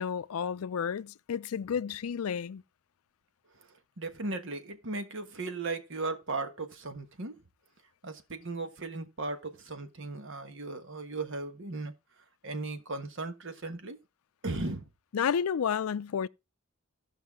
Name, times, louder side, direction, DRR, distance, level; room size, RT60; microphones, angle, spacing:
voice 1, 0.0-2.6 15.1-16.3, left 7 dB, 85° left, 0.4 m, -31 dB
voice 2, 3.7-7.4 8.0-11.9 12.4-14.0 14.4-14.9, right 3 dB, 60° right, 1.3 m, -37 dB
15.5 x 5.6 x 3.5 m
head